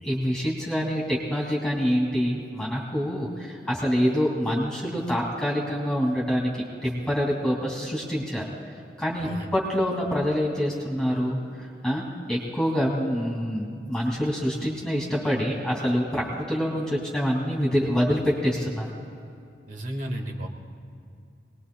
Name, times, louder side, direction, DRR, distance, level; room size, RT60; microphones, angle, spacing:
voice 1, 0.0-6.5 6.8-8.4 9.0-18.9, equal, 5° left, -3 dB, 2.4 m, -26 dB
voice 2, 19.7-20.5, right 1 dB, 45° right, 2 dB, 1.8 m, -33 dB
26.0 x 20.0 x 2.3 m, 2.4 s
head